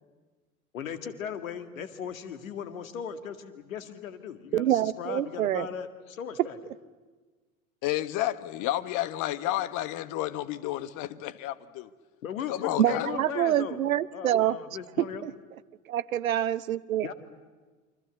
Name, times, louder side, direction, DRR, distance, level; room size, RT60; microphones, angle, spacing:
voice 1, 0.7-6.6 12.2-13.8 14.1-15.2 17.0-17.1, left 8 dB, 70° left, 2.1 m, -37 dB
voice 2, 4.5-5.7 12.8-14.6 15.2-15.3 15.9-17.1, right 12 dB, 75° right, 0.9 m, -26 dB
voice 3, 7.8-11.9 12.5-13.1, left 14 dB, 45° left, 1.3 m, -31 dB
28.5 x 25.0 x 7.9 m
figure-of-eight pair, 75°, 42 cm